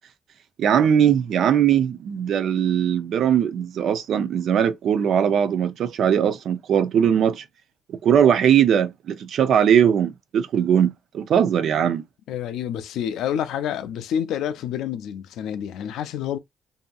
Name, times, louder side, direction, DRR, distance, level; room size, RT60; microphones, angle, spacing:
voice 1, 0.6-7.4 7.9-12.0, right 8 dB, 70° right, 0.4 m, -20 dB
voice 2, 12.3-16.4, left 9 dB, 85° left, 0.4 m, -28 dB
2.7 x 2.6 x 2.3 m
cardioid pair, 90°, 0 cm